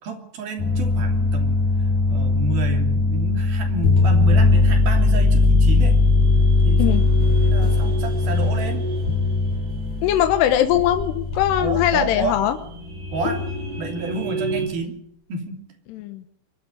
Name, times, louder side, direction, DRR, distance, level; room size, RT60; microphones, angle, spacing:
voice 1, 0.0-1.6 2.1-6.0 6.6-7.0 7.4-8.9 11.6-12.4 13.1-13.5 13.8-15.0 15.3-15.6, right 3 dB, 65° right, 4 dB, 4.8 m, -30 dB
sound 1, 0.6-12.4 13.3-13.6, left 3 dB, 50° left, 7.8 m, -19 dB
sound 2, 4.6-14.7, right 3 dB, 85° right, 7.3 m, -34 dB
voice 2, 10.0-12.6 15.9-16.2, left 11 dB, 85° left, 8 dB, 3.2 m, -20 dB
23.0 x 12.5 x 9.3 m, 0.67 s
omnidirectional pair, 4.7 m